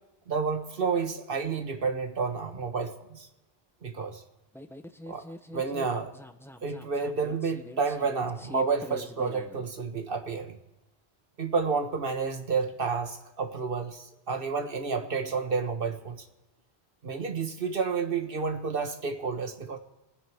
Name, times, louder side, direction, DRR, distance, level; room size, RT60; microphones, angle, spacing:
voice 1, 0.3-3.3 3.8-4.2 5.1-5.2 5.5-6.1 6.6-10.5 11.4-16.2 17.0-19.8, right 5 dB, 60° right, 6 dB, 1.5 m, -30 dB
sound 1, 4.5-9.7, equal, 5° left, 0.5 m, -44 dB
25.0 x 10.0 x 3.5 m, 1.1 s
omnidirectional pair, 1.1 m